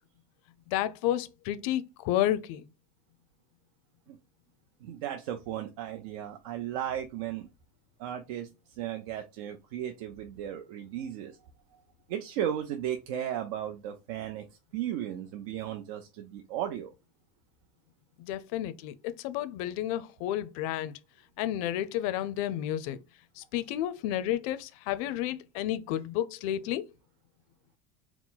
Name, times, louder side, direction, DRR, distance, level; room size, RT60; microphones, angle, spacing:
voice 1, 0.7-2.7 18.2-21.0 21.4-23.0 23.4-26.8, left 12 dB, 70° left, 0.5 m, -31 dB
voice 2, 4.8-7.5 8.0-11.4 12.1-14.5 14.7-16.9, right 10 dB, 80° right, 0.6 m, -35 dB
4.5 x 2.0 x 3.8 m
cardioid pair, 165°, 19 cm